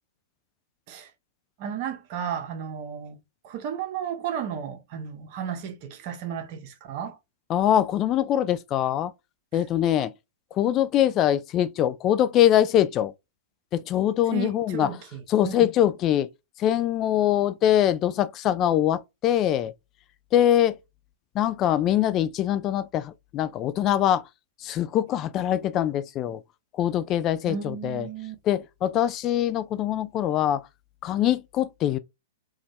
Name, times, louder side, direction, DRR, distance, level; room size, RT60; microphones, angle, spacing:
voice 1, 1.6-3.2 3.4-7.2 14.3-15.6 27.4-28.4, right 8 dB, 45° right, 0.8 m, -33 dB
voice 2, 7.5-9.1 9.5-10.1 10.5-13.1 13.7-14.9 15.3-16.3 16.6-19.7 20.3-20.8 21.3-24.2 24.6-26.4 26.7-28.1 28.4-30.6 31.0-32.0, left 11 dB, 30° left, 0.4 m, -23 dB
2.6 x 2.3 x 3.1 m
hypercardioid pair, 110°, 0 cm